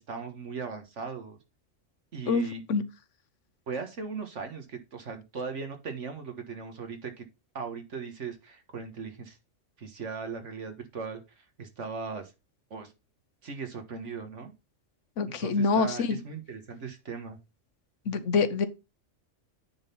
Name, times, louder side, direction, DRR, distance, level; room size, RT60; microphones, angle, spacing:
voice 1, 0.0-1.4 2.1-2.6 3.7-7.3 7.5-9.4 9.8-12.3 12.7-12.9 13.4-14.5 15.4-17.4, right 5 dB, 65° right, 1.8 m, -38 dB
voice 2, 2.3-2.8 15.2-16.2 18.1-18.7, left 4 dB, 70° left, 1.2 m, -26 dB
9.6 x 4.0 x 5.4 m
omnidirectional pair, 1.3 m